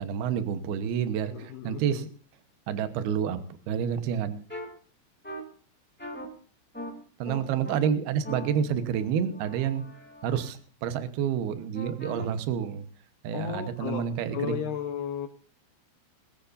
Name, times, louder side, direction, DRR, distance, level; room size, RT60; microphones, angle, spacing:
voice 1, 0.0-2.0 2.7-3.4 3.7-4.5 7.2-9.8 10.2-12.9 13.2-14.6, right 8 dB, 70° right, 10 dB, 2.5 m, -29 dB
voice 2, 1.3-2.1 13.3-15.3, left 9 dB, 75° left, 5 dB, 2.5 m, -34 dB
sound 1, 4.5-4.6 5.2-5.4 6.0-6.2 6.7-6.9 7.2-7.7 8.2-10.5 11.7-12.2, equal, 5° left, 1.2 m, -41 dB
22.5 x 14.5 x 2.6 m, 0.42 s
omnidirectional pair, 5.8 m